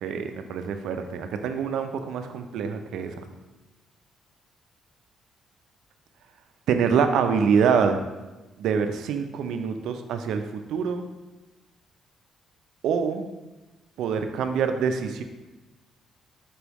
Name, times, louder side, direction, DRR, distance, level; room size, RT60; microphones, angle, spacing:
voice 1, 0.0-3.2 6.7-8.0 8.6-11.0 12.8-13.3 14.0-15.2, right 6 dB, 80° right, 7 dB, 0.4 m, -25 dB
4.5 x 3.4 x 3.0 m, 1.1 s
cardioid pair, 90°, 0 cm